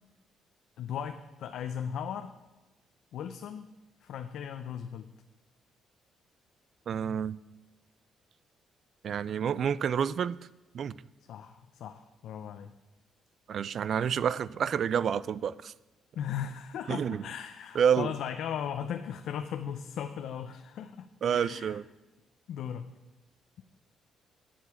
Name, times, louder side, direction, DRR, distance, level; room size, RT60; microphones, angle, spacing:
voice 1, 0.8-2.3 3.1-3.7 4.0-5.1 11.3-12.7 16.1-21.8 22.5-22.9, left 8 dB, 75° left, 7 dB, 0.6 m, -37 dB
voice 2, 6.9-7.4 9.0-10.4 10.7-10.9 13.5-15.7 16.9-17.2 17.7-18.1 21.2-21.8, right 8 dB, 60° right, 19 dB, 0.4 m, -28 dB
8.8 x 7.6 x 8.2 m, 1.1 s
cardioid pair, 90°, 0 cm